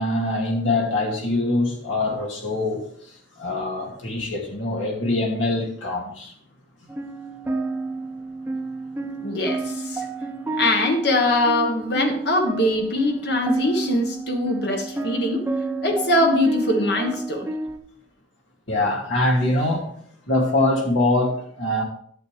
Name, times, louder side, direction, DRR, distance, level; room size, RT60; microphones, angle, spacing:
voice 1, 0.0-2.9 3.4-6.3 18.7-19.9 20.3-21.8, left 2 dB, 80° left, 0 dB, 2.4 m, -23 dB
sound 1, 6.9-17.8, right 3 dB, 10° right, 0.7 m, -30 dB
voice 2, 9.2-10.1 10.6-15.4 15.8-17.5, left 1 dB, 55° left, 4 dB, 1.3 m, -22 dB
11.0 x 8.0 x 3.3 m, 0.62 s
head